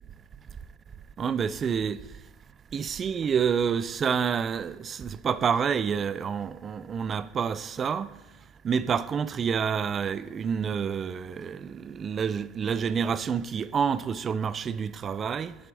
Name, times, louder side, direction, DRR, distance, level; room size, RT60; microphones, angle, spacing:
voice 1, 1.2-2.0 2.7-8.1 8.6-15.5, right 7 dB, 30° right, 0.4 m, -28 dB
9.9 x 7.6 x 3.5 m
supercardioid pair, 120°, 0 cm